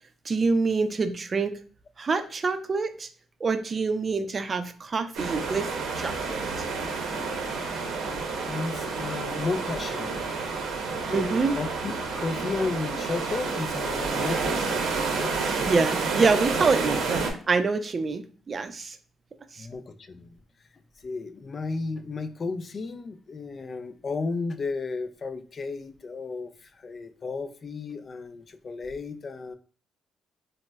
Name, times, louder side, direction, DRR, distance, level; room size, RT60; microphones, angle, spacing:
voice 1, 0.3-1.5 2.0-3.1 3.4-5.7 6.0-6.4 11.1-11.5 15.6-19.0 19.6-19.7, right 4 dB, 35° right, 9 dB, 0.4 m, -26 dB
sound 1, 5.1-17.3, right 4 dB, 80° right, 0.7 m, -29 dB
voice 2, 8.4-10.3 11.0-15.5 19.6-20.4 21.0-29.6, left 4 dB, 40° left, 11 dB, 0.3 m, -33 dB
3.9 x 2.0 x 2.3 m, 0.42 s
cardioid pair, 90°, 0 cm